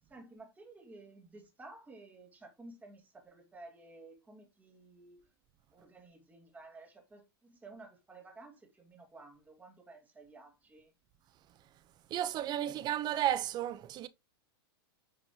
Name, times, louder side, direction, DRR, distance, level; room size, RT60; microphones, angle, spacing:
voice 1, 0.1-5.3 5.7-10.9, right 2 dB, 10° right, 2.8 m, -54 dB
voice 2, 12.1-14.1, right 12 dB, 35° right, 0.9 m, -33 dB
10.0 x 5.9 x 3.0 m
hypercardioid pair, 125°, 13 cm